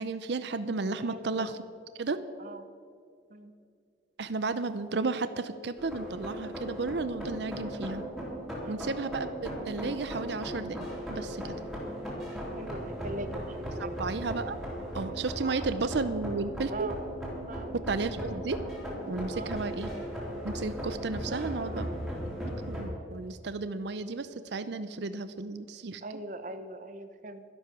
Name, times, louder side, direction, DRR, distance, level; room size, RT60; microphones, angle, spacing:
voice 1, 0.0-1.6 2.0-2.2 4.2-8.0 8.7-11.6 13.8-14.6 14.9-16.9 17.9-18.6 19.1-19.9 20.4-21.9 22.7-26.0, right 3 dB, 65° right, 12 dB, 0.6 m, -33 dB
voice 2, 1.0-1.3 2.4-2.7 3.3-3.5 8.6-8.9 12.6-14.0 15.4-15.6 16.7-17.0 17.5-17.7 19.3-19.6 21.3-22.5 26.0-27.4, right 2 dB, 40° right, 10 dB, 0.9 m, -41 dB
sound 1, 5.8-22.8, equal, ahead, 3.3 m, -37 dB
12.0 x 12.0 x 6.0 m, 2.3 s
head